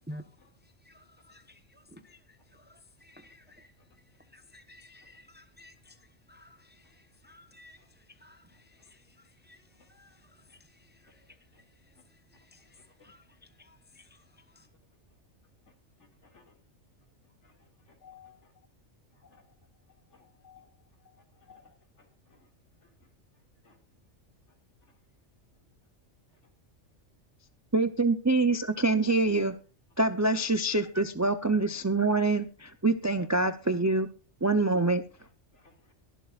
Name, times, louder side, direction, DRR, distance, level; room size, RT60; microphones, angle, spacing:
voice 1, 0.9-2.2 2.5-3.7 4.3-5.9 6.3-6.8 7.2-7.8 8.2-8.4 8.9-9.0 9.5-9.6 9.9-10.2 12.5-12.6 13.0-13.2 13.6-14.0 14.6-14.7, equal, 10° right, 0.9 m, -51 dB
voice 2, 18.0-18.3 19.3-19.4 20.1-20.6 21.5-21.7 23.6-23.7 35.6-35.9, left 8 dB, 70° left, 2.6 m, -55 dB
voice 3, 27.7-29.6 30.0-34.1 34.4-35.0, right 2 dB, 25° right, 0.3 m, -25 dB
22.5 x 7.6 x 2.4 m
omnidirectional pair, 1.3 m